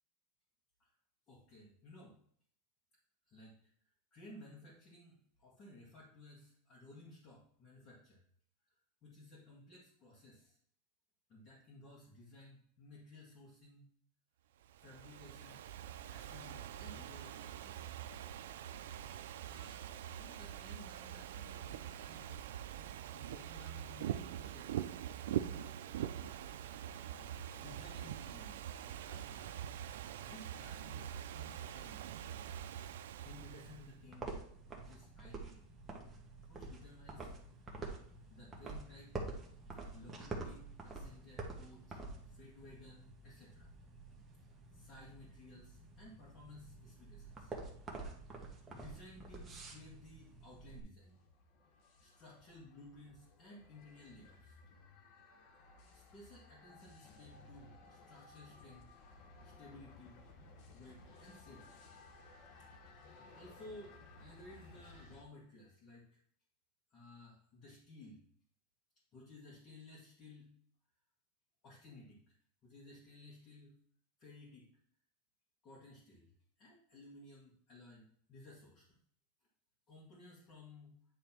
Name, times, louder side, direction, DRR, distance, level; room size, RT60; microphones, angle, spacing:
voice 1, 1.3-2.2 3.3-3.6 4.1-8.2 9.0-10.6 11.3-13.9 14.8-15.6 16.1-17.8 19.4-19.9 20.2-22.5 22.7-24.9 26.2-26.4 26.9-29.9 30.2-32.4 33.2-34.5 34.7-35.7 36.5-37.3 38.3-39.2 39.8-42.0 42.3-43.7 44.7-47.5 48.7-51.2 52.0-54.5 55.9-58.9 59.4-60.2 60.7-61.8 63.3-66.2 66.9-68.2 69.1-70.5 71.6-72.4 72.6-73.7 74.2-74.7 75.6-76.3 76.6-79.0 79.9-81.0, left 2 dB, 30° left, -7 dB, 1.7 m, -57 dB
Ocean / Fireworks, 14.6-33.9, right 10 dB, 90° right, 0.4 m, -44 dB
sound 1, 33.2-50.8, right 3 dB, 15° right, 1.0 m, -48 dB
sound 2, 51.0-65.2, left 3 dB, 45° left, 1.0 m, -59 dB
8.9 x 3.3 x 4.3 m, 0.62 s
supercardioid pair, 165°, 0 cm